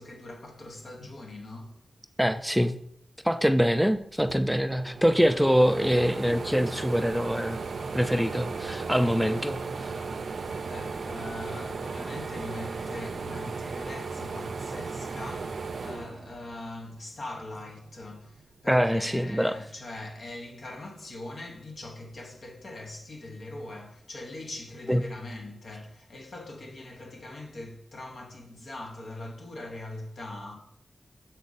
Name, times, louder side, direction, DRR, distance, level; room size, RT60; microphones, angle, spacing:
voice 1, 0.0-1.8 10.6-30.6, left 2 dB, 70° left, 1.1 m, -41 dB
voice 2, 2.2-2.7 3.2-7.6 7.9-9.9 18.7-19.5 24.9-25.0, equal, ahead, 0.4 m, -24 dB
sound 1, 4.3-16.9 17.3-18.4, right 4 dB, 75° right, 0.4 m, -36 dB
6.3 x 4.2 x 4.0 m
cardioid pair, 65°, 0 cm